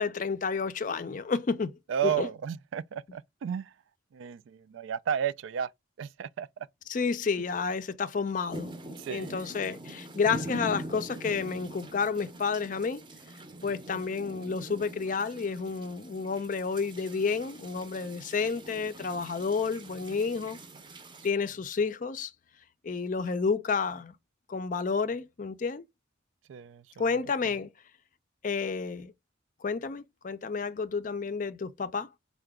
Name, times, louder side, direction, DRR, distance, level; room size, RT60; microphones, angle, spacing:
voice 1, 0.0-1.7 2.0-2.3 6.9-8.7 9.1-13.0 13.6-20.6 21.2-22.3 22.8-24.1 24.5-25.8 27.0-27.7 28.4-29.1 29.6-32.1, left 5 dB, 40° left, 0.4 m, -30 dB
voice 2, 1.9-3.7 4.1-5.7 6.0-6.7 9.0-9.5 26.5-27.0, right 8 dB, 75° right, 0.3 m, -33 dB
sound 1, 8.5-21.3, right 1 dB, 25° right, 0.6 m, -43 dB
4.7 x 2.1 x 3.5 m
head